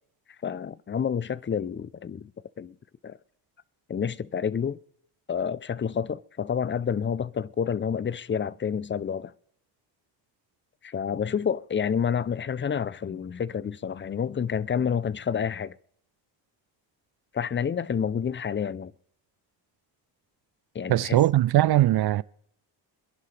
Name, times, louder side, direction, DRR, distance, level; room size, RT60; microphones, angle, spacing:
voice 1, 0.4-2.3 2.6-2.7 3.0-3.2 3.9-4.8 5.3-9.3 10.8-15.8 17.3-18.9 20.7-21.2, left 7 dB, 25° left, 0.5 m, -29 dB
voice 2, 20.9-22.2, right 14 dB, 55° right, 0.5 m, -20 dB
27.0 x 11.0 x 3.3 m
cardioid pair, 80°, 46 cm